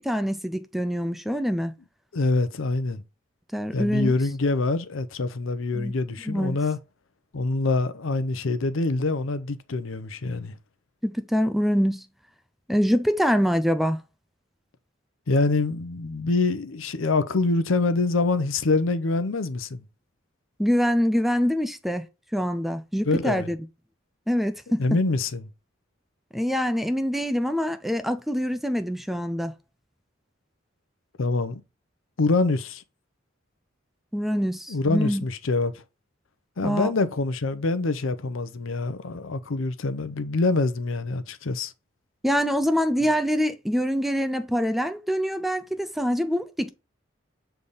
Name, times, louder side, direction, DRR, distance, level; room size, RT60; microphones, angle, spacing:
voice 1, 0.0-1.7 3.5-4.1 5.7-5.9 6.3-6.6 11.0-12.1 12.7-14.0 20.6-22.0 22.3-23.6 24.3-24.8 26.3-29.5 34.1-35.3 36.6-36.9 42.2-46.7, equal, ahead, 0.4 m, -25 dB
voice 2, 2.1-3.0 3.7-6.8 7.3-10.5 15.3-19.8 23.1-23.5 24.8-25.4 31.2-31.6 32.2-32.8 34.7-35.8 36.6-41.7, left 3 dB, 80° left, 0.7 m, -25 dB
7.0 x 3.4 x 4.0 m
head